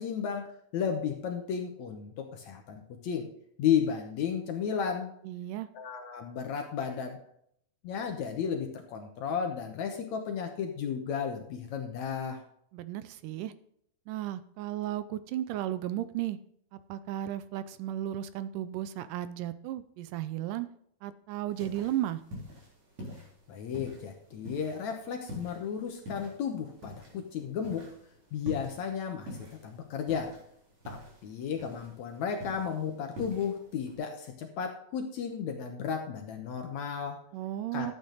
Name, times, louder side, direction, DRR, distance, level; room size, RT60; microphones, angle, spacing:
voice 1, 0.0-3.3 3.6-5.1 5.7-7.2 7.8-12.4 23.5-27.9 28.3-30.3 30.9-37.2 37.7-37.9, left 7 dB, 65° left, 4 dB, 2.0 m, -33 dB
voice 2, 5.2-5.7 12.7-13.5 14.1-16.4 16.7-20.7 21.0-22.2 37.3-37.9, right 12 dB, 80° right, 14 dB, 2.0 m, -34 dB
sound 1, 21.5-34.0, left 1 dB, 50° right, 4.9 m, -47 dB
12.0 x 8.7 x 3.9 m, 0.69 s
omnidirectional pair, 4.0 m